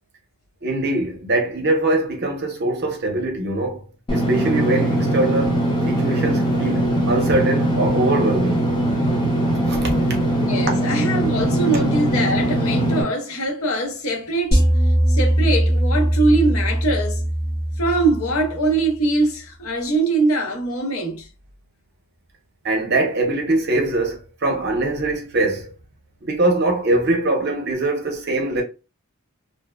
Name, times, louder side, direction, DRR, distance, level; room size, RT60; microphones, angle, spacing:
voice 1, 0.6-3.8 4.1-8.7 9.6-9.9 22.6-25.7 26.2-28.6, right 2 dB, 50° right, 0.7 m, -22 dB
Engine / Mechanisms, 4.1-13.0, right 1 dB, 20° left, 0.6 m, -21 dB
voice 2, 10.4-14.7 15.1-17.3 17.8-21.3, right 2 dB, 80° left, 0.7 m, -22 dB
sound 1, 14.5-18.8, right 1 dB, 45° left, 1.1 m, -20 dB
2.7 x 2.1 x 2.2 m
head